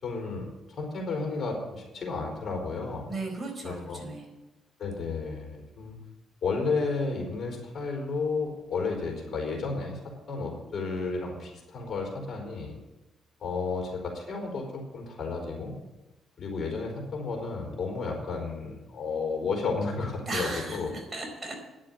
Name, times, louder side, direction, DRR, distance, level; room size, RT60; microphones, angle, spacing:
voice 1, 0.0-3.1 3.6-4.0 4.8-5.9 6.4-12.7 13.4-15.7 16.4-20.9, left 4 dB, 50° left, 1 dB, 4.4 m, -32 dB
voice 2, 3.1-4.2 20.3-21.6, right 2 dB, 20° right, 0 dB, 4.4 m, -36 dB
10.5 x 7.5 x 9.0 m, 1.0 s
cardioid pair, 90°, 0 cm